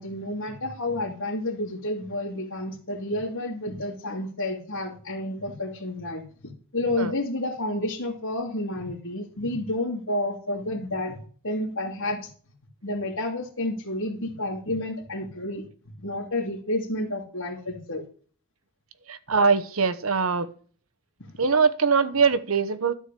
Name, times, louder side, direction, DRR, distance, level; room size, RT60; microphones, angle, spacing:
voice 1, 0.0-11.2 11.4-12.3 12.8-15.7 16.0-18.1 21.2-21.3, left 1 dB, 75° left, -5 dB, 2.6 m, -30 dB
voice 2, 19.1-20.5 21.4-22.9, right 5 dB, 80° right, 14 dB, 1.1 m, -22 dB
13.0 x 4.6 x 8.3 m, 0.44 s
head